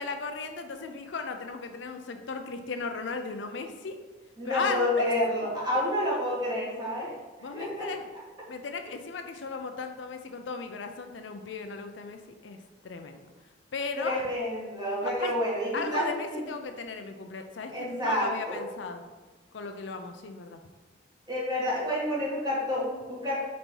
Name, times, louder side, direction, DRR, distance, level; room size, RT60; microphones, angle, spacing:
voice 1, 0.0-4.0 4.4-5.1 7.4-8.0 8.5-12.6 12.8-13.2 13.7-14.3 15.0-15.3 15.7-19.0 19.5-20.6, left 4 dB, 70° left, 6 dB, 0.5 m, -36 dB
voice 2, 4.4-7.1 7.5-7.9 14.0-16.4 17.7-18.6 21.3-23.4, left 1 dB, 20° right, -6 dB, 1.8 m, -29 dB
4.4 x 4.2 x 5.3 m, 1.3 s
head